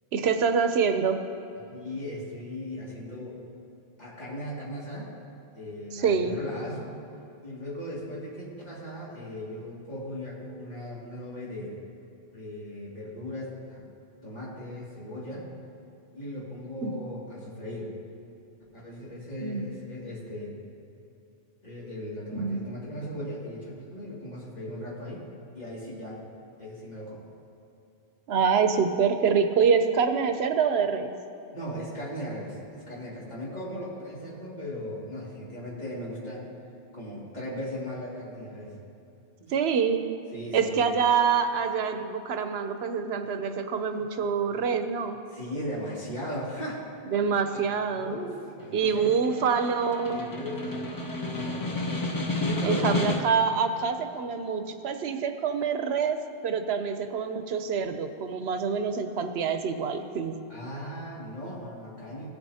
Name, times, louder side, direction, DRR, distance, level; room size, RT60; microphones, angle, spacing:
voice 1, 0.1-1.2 5.9-6.4 16.8-16.9 19.4-19.6 22.3-22.7 28.3-31.1 39.5-40.1 40.5-45.2 47.1-48.2 48.7-50.2 52.6-60.4, right 6 dB, 85° right, 8 dB, 0.9 m, -26 dB
voice 2, 1.7-3.3 4.0-5.1 5.5-6.9 7.4-11.7 12.3-13.8 14.2-15.5 16.1-17.9 18.7-20.5 21.6-25.2 25.5-26.2 26.6-27.3 31.5-36.5 36.9-38.8 39.4-39.5 40.3-40.9 45.3-46.8 47.5-47.7 47.9-49.1 50.0-51.7 52.4-53.1 60.5-62.3, equal, 40° left, -7 dB, 2.5 m, -38 dB
Snare drum, 48.6-53.5, left 2 dB, 25° left, 0.6 m, -31 dB
16.5 x 8.0 x 2.8 m, 2.7 s
omnidirectional pair, 1.1 m